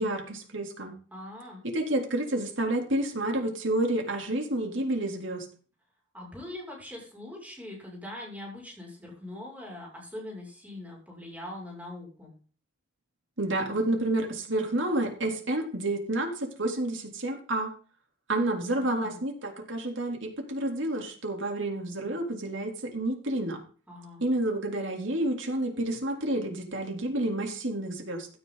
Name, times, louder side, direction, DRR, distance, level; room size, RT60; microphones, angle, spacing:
voice 1, 0.0-0.9 1.6-5.5 13.4-17.7 18.3-23.6 24.2-28.3, right 1 dB, 75° right, 3 dB, 3.6 m, -29 dB
voice 2, 1.1-1.6 6.1-12.3 18.5-19.2 23.9-24.2, left 1 dB, 10° right, -2 dB, 6.7 m, -42 dB
16.0 x 12.5 x 4.1 m, 0.41 s
head